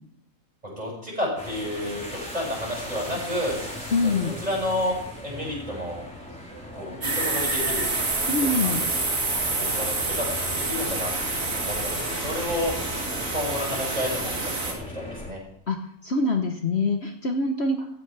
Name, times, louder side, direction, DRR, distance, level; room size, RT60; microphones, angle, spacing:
voice 1, 0.6-3.6 4.0-5.0 5.2-6.0 6.7-8.0 8.4-8.7 9.5-12.7 13.3-15.4, left 1 dB, 25° right, -3 dB, 6.6 m, -31 dB
sound 1, 1.4-15.3, left 1 dB, 5° left, 4.2 m, -38 dB
voice 2, 3.9-4.3 8.3-8.8 15.7-17.8, left 2 dB, 50° left, 4 dB, 1.3 m, -25 dB
sound 2, 7.0-14.7, right 3 dB, 65° right, 2.7 m, -28 dB
16.0 x 15.5 x 3.4 m, 0.76 s
omnidirectional pair, 1.5 m